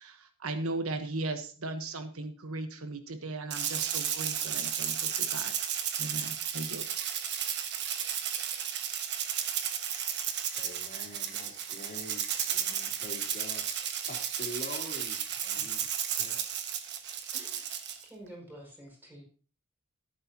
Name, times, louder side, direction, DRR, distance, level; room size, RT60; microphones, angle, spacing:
voice 1, 0.0-5.5 6.0-7.1, right 2 dB, 75° right, 7 dB, 1.2 m, -37 dB
Rattle (instrument), 3.5-18.0, right 9 dB, 50° right, 1.2 m, -33 dB
voice 2, 10.6-15.8 16.2-16.5, left 1 dB, 40° left, -1 dB, 3.2 m, -45 dB
voice 3, 15.5-15.8 17.3-17.6 18.0-19.2, right 1 dB, 10° right, -3 dB, 5.9 m, -49 dB
13.5 x 11.0 x 2.9 m, 0.39 s
head